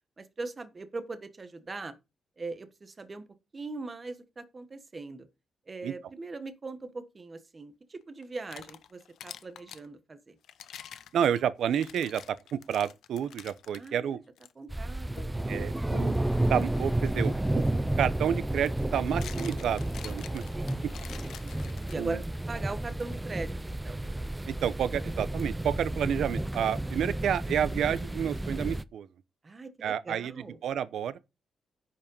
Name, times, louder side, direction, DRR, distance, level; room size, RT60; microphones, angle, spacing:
voice 1, 0.2-1.9 2.4-3.3 3.5-5.3 5.7-10.3 13.7-14.2 14.5-15.4 20.3-20.8 21.4-22.2 22.5-24.0 29.4-30.6, right 3 dB, 25° right, 1.3 m, -40 dB
sound 1, 8.2-9.9 10.4-13.9 14.4-14.5 15.2-15.4 17.5-17.6 18.8-22.3, left 9 dB, 75° left, 0.7 m, -48 dB
voice 2, 11.1-14.2 15.5-16.2 16.5-17.6 18.0-20.4 22.0-22.2 24.5-29.1 29.8-31.2, right 9 dB, 70° right, 0.8 m, -30 dB
sound 2, 14.7-28.8, right 1 dB, 10° right, 0.4 m, -31 dB
Gong, 15.6-20.2, left 2 dB, 20° left, 3.6 m, -58 dB
10.0 x 5.3 x 5.4 m
cardioid pair, 150°, 0 cm